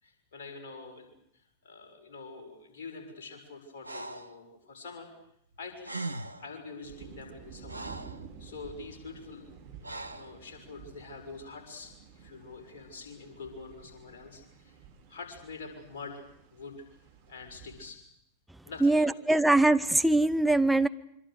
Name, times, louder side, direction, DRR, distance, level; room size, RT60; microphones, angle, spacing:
voice 1, 0.0-1.1 1.6-5.1 5.6-5.9 6.4-7.9 8.4-14.8 15.1-16.2 16.5-16.9 17.3-18.0 18.6-19.2, left 4 dB, 55° left, 6.5 m, -45 dB
Breathing, 3.8-4.4 5.5-5.6 5.8-6.5 7.2-8.2 9.8-10.3, right 2 dB, 85° right, 1.0 m, -39 dB
sound 1, 6.8-17.9, right 6 dB, 55° right, 4.0 m, -51 dB
voice 2, 18.8-20.9, right 2 dB, 5° right, 1.0 m, -22 dB
26.0 x 24.5 x 6.7 m
figure-of-eight pair, 90°, 0 cm